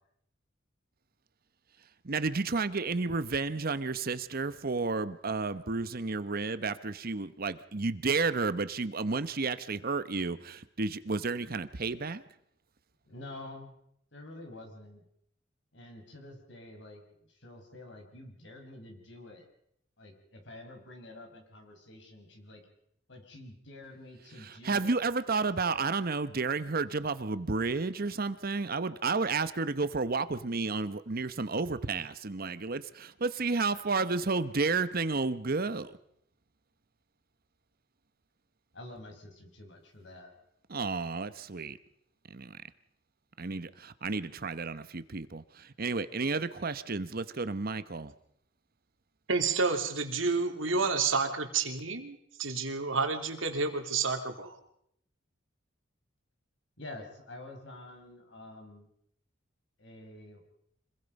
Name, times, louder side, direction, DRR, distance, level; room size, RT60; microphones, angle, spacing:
voice 1, 2.0-12.2 24.4-36.0 40.7-41.8 42.3-42.6 43.4-48.1, right 4 dB, 50° right, 13 dB, 0.9 m, -31 dB
voice 2, 13.0-13.7 14.1-15.0 15.7-19.5 20.0-22.6 23.1-25.0 38.7-40.3 56.8-58.9 59.8-60.4, left 2 dB, 65° left, 4 dB, 5.4 m, -48 dB
voice 3, 49.3-54.5, right 4 dB, 80° right, 5 dB, 2.9 m, -30 dB
26.0 x 21.5 x 5.4 m, 0.74 s
head